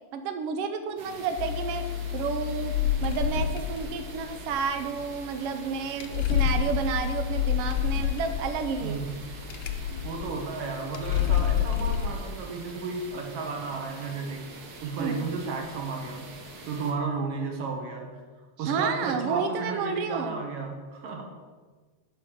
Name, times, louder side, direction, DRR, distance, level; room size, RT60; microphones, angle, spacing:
voice 1, 0.1-1.8 2.1-9.0 15.0-15.3 18.6-20.4, right 5 dB, 90° right, 7 dB, 1.3 m, -31 dB
sound 1, 1.0-16.9, right 3 dB, 70° right, 0.9 m, -45 dB
sound 2, 1.4-12.2, left 9 dB, 75° left, 1.9 m, -28 dB
voice 2, 8.8-9.3 9.7-14.5 14.8-16.3 16.7-18.2 18.6-21.2, right 4 dB, 55° right, 1 dB, 2.2 m, -33 dB
9.5 x 5.6 x 6.5 m, 1.4 s
omnidirectional pair, 3.6 m